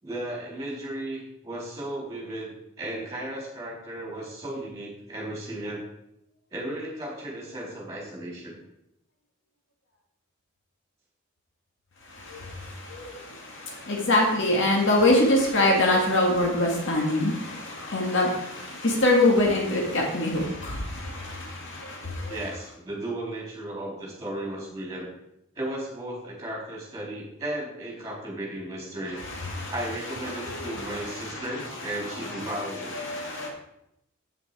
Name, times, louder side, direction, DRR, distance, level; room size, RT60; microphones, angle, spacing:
voice 1, 0.0-2.5 2.8-5.8 6.5-8.5 22.3-25.1 25.6-29.2 29.7-33.0, right 1 dB, 15° right, -3 dB, 3.7 m, -35 dB
voice 2, 12.2-22.4 29.3-29.7 30.3-31.4 32.8-33.5, left 1 dB, 60° left, -1 dB, 1.9 m, -25 dB
8.3 x 7.2 x 4.9 m, 0.81 s
head